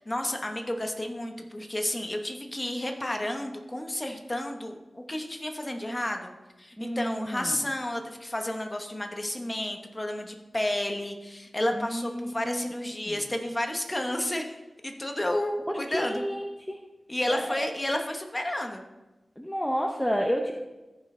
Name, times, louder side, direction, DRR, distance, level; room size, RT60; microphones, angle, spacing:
voice 1, 0.0-6.3 6.6-16.2 17.1-18.8, left 1 dB, 20° left, 4 dB, 1.0 m, -31 dB
voice 2, 6.8-7.6 11.7-13.2 15.9-16.8 17.3-17.7 19.4-20.5, equal, 5° left, 2 dB, 0.7 m, -31 dB
14.5 x 5.3 x 3.8 m, 1.1 s
wide cardioid pair, 115°, 0 cm